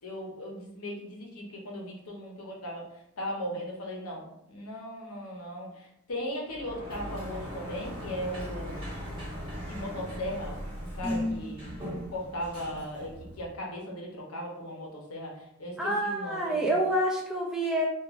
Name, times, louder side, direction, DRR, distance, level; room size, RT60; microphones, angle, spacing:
voice 1, 0.0-2.9 3.2-8.8 9.7-11.6 12.1-16.7, equal, 75° left, -1 dB, 0.7 m, -38 dB
Sliding door, 6.5-13.6, equal, 25° right, 1.0 m, -39 dB
voice 2, 11.0-11.5 15.8-17.9, right 1 dB, 5° right, -2 dB, 0.3 m, -28 dB
3.0 x 2.3 x 2.4 m, 0.79 s
head